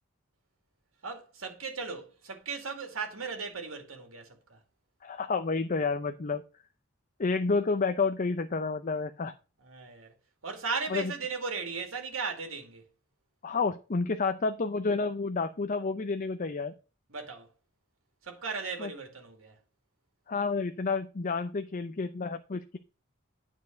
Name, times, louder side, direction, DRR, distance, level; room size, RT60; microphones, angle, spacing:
voice 1, 1.0-4.6 9.6-10.1 10.4-12.8 17.1-17.5 18.2-19.6, right 4 dB, 85° right, 2.2 m, -37 dB
voice 2, 5.0-6.4 7.2-9.3 10.9-11.1 13.4-16.7 18.8-18.9 20.3-22.8, left 4 dB, 40° left, 0.6 m, -30 dB
9.5 x 4.7 x 5.2 m
head